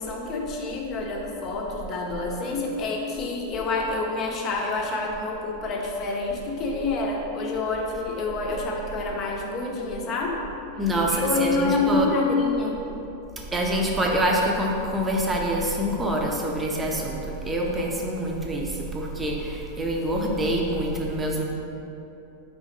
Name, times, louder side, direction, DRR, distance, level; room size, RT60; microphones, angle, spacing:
voice 1, 0.0-10.4 11.1-12.8, left 3 dB, 35° left, -1 dB, 0.9 m, -27 dB
voice 2, 10.8-12.1 13.4-21.4, right 1 dB, 15° right, -1 dB, 0.8 m, -26 dB
5.0 x 3.6 x 5.2 m, 2.9 s
figure-of-eight pair, 90°, 0 cm